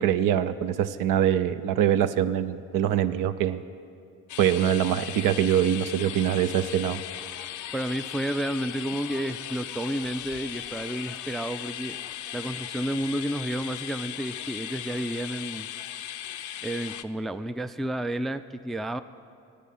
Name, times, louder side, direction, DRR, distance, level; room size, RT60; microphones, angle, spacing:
voice 1, 0.0-3.6 4.4-7.0, right 10 dB, 70° right, 12 dB, 0.6 m, -24 dB
sound 1, 4.3-17.0, left 12 dB, 60° left, 0.5 m, -38 dB
voice 2, 7.7-12.0 12.3-15.7 16.6-19.0, right 1 dB, ahead, 12 dB, 0.3 m, -31 dB
10.0 x 8.4 x 7.4 m, 2.4 s
hypercardioid pair, 50°, 34 cm